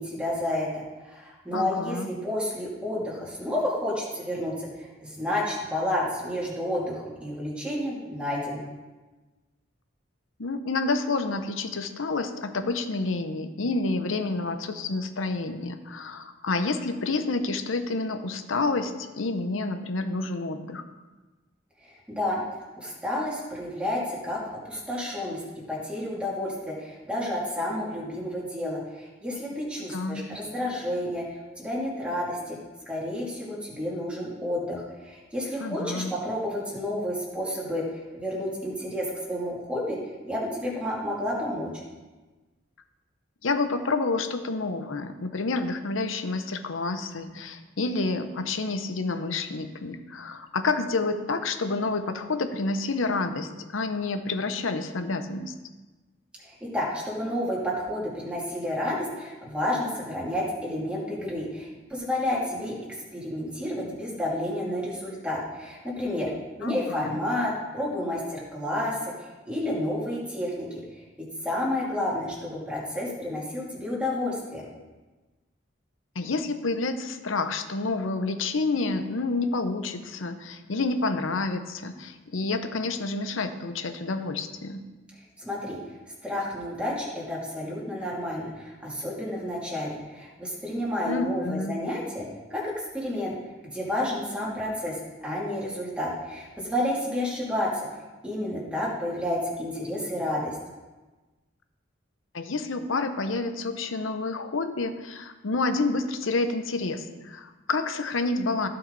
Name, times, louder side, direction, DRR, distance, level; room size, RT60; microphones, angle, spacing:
voice 1, 0.0-8.6 21.8-22.4 22.8-25.4 25.7-32.6 32.9-40.0 40.2-41.7 56.4-62.7 63.1-66.3 66.6-70.7 71.4-74.6 85.4-85.8 86.2-92.2 92.5-93.3 93.7-95.0 95.2-97.9 98.2-100.6, left 1 dB, 5° right, -6 dB, 2.7 m, -30 dB
voice 2, 1.5-2.1 10.4-20.8 29.9-30.2 35.6-36.1 43.4-55.5 66.6-67.2 76.1-84.8 91.1-91.8 102.3-108.7, left 3 dB, 90° left, 8 dB, 0.8 m, -29 dB
15.0 x 5.8 x 4.0 m, 1.2 s
head